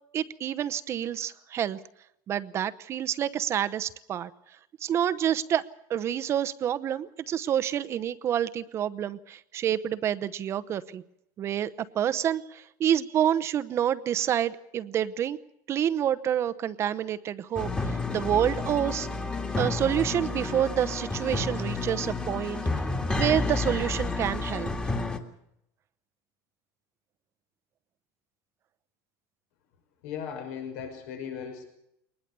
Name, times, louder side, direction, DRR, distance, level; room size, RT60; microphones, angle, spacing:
voice 1, 0.1-1.8 2.3-4.3 4.8-5.6 5.9-11.0 11.4-15.4 15.7-19.1 19.6-22.8 23.2-24.7, right 10 dB, 30° right, 12 dB, 0.8 m, -28 dB
sound 1, 17.6-25.2, left 3 dB, 10° left, 2.0 m, -30 dB
voice 2, 30.0-31.7, left 7 dB, 75° left, 4 dB, 5.9 m, -37 dB
22.5 x 20.0 x 6.9 m, 0.79 s
cardioid pair, 155°, 9 cm